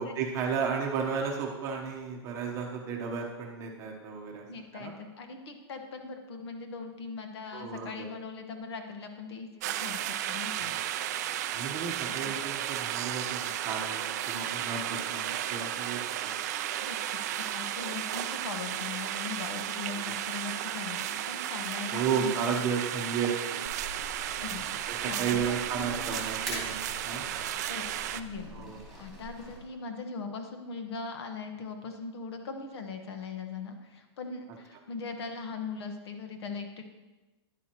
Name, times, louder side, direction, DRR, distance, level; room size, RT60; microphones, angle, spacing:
voice 1, 0.0-4.4 4.7-4.9 7.5-8.1 10.6-10.8 11.5-16.4 20.0-20.2 21.9-23.6 24.9-27.3 28.5-28.8, right 6 dB, 20° right, 1 dB, 1.0 m, -33 dB
voice 2, 4.5-10.7 12.1-12.3 16.8-22.6 24.4-24.6 25.0-26.2 27.7-27.8 28.1-28.7 29.0-36.8, left 5 dB, 65° left, 5 dB, 1.3 m, -40 dB
sound 1, 9.6-28.2, right 11 dB, 35° right, 0.4 m, -34 dB
sound 2, 23.6-29.6, right 1 dB, ahead, 2.6 m, -44 dB
10.5 x 9.4 x 3.0 m, 1.1 s
supercardioid pair, 170°, 15 cm